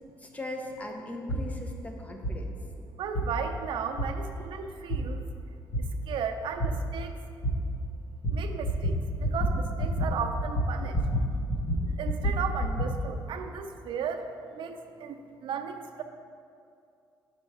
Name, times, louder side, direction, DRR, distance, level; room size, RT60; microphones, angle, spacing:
voice 1, 0.2-2.6, left 1 dB, 15° left, 2 dB, 0.9 m, -39 dB
sound 1, 1.3-1.4 2.2-2.3 3.1-3.3 4.0-4.1 4.9-5.0 5.7-5.8 6.6-6.7 7.4-7.5 8.2-8.4 8.6-9.0 9.2-9.5 9.8-10.1 10.4-11.2 11.5-12.9, right 1 dB, 60° left, 1.7 m, -27 dB
voice 2, 3.0-5.2 5.8-7.2 8.3-11.0 11.9-16.0, right 6 dB, 75° right, 6 dB, 0.6 m, -35 dB
6.1 x 5.5 x 4.9 m, 2.5 s
cardioid pair, 90°, 9 cm